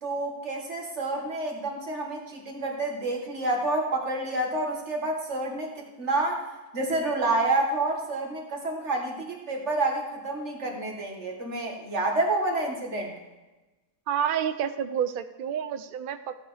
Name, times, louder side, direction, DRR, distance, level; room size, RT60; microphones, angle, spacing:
voice 1, 0.0-6.5 6.7-13.1, right 2 dB, 50° right, 1 dB, 2.0 m, -29 dB
voice 2, 14.1-16.5, right 8 dB, 75° right, 10 dB, 0.4 m, -29 dB
15.0 x 8.4 x 3.4 m, 1.1 s
omnidirectional pair, 1.6 m